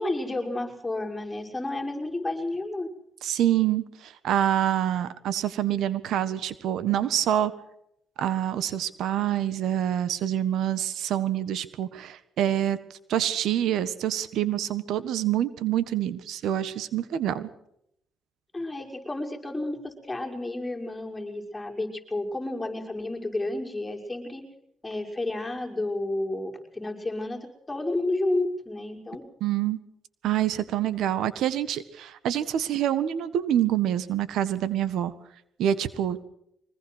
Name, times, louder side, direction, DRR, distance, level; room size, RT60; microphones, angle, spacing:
voice 1, 0.0-2.9 18.5-24.4 24.8-27.4 27.7-29.2, left 2 dB, 10° left, 1 dB, 6.2 m, -31 dB
voice 2, 3.2-7.5 8.2-12.8 13.1-17.5 29.4-29.8 30.2-35.1 35.6-36.2, right 11 dB, 80° right, 14 dB, 1.5 m, -26 dB
24.5 x 20.0 x 6.4 m, 0.76 s
cardioid pair, 90°, 0 cm